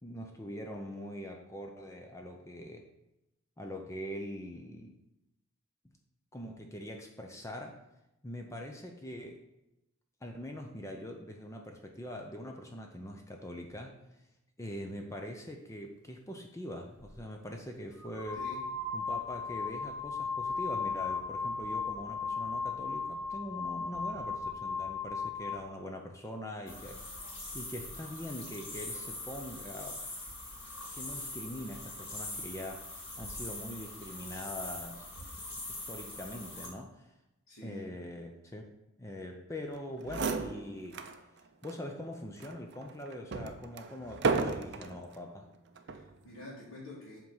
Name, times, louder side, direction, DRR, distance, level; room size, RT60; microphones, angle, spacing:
voice 1, 0.0-2.9 3.6-5.0 6.3-7.8 8.2-9.4 10.2-14.0 14.6-18.4 18.9-27.0 27.5-30.0 30.9-32.9 33.2-35.1 35.6-37.1 37.6-38.7 39.0-41.1 41.6-45.5, left 1 dB, 15° left, 3 dB, 0.6 m, -43 dB
sound 1, 17.0-17.2 18.0-25.7, left 4 dB, 5° right, 1.0 m, -36 dB
sound 2, 26.7-36.7, left 2 dB, 60° left, 2.3 m, -43 dB
voice 2, 37.5-37.9 45.9-47.2, left 1 dB, 75° left, -8 dB, 2.1 m, -48 dB
sound 3, 39.7-39.8 40.0-41.2 41.6-41.7 42.4-45.0 45.8-46.1, right 4 dB, 55° right, 0.5 m, -34 dB
7.7 x 3.7 x 5.5 m, 0.91 s
head